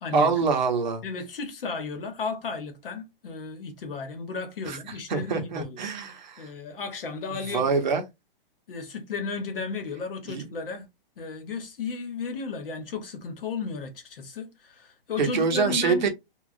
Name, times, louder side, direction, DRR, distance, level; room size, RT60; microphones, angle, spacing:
voice 1, 0.1-1.0 4.7-4.8 5.1-6.5 7.3-8.0 10.3-10.5 15.2-16.1, right 5 dB, 50° right, 0.7 m, -25 dB
voice 2, 1.0-5.8 6.4-7.7 8.7-10.8 11.2-16.1, left 4 dB, 70° left, 1.0 m, -34 dB
3.0 x 2.3 x 2.5 m
hypercardioid pair, 175°, 29 cm